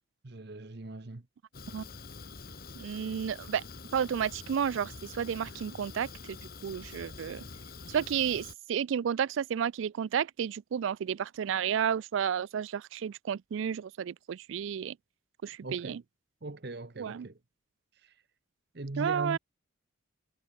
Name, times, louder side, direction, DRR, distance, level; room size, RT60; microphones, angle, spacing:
voice 1, 0.2-1.2 5.4-5.5 15.6-16.0 16.4-17.4 18.0-18.1 18.7-19.4, right 2 dB, 55° right, 1.0 m, -40 dB
Fire, 1.5-8.5, left 4 dB, 45° left, 1.2 m, -46 dB
voice 2, 2.8-3.6 3.9-6.4 6.6-7.4 7.9-15.0 15.4-16.0 17.0-17.3 19.0-19.4, right 8 dB, 70° right, 0.3 m, -32 dB
head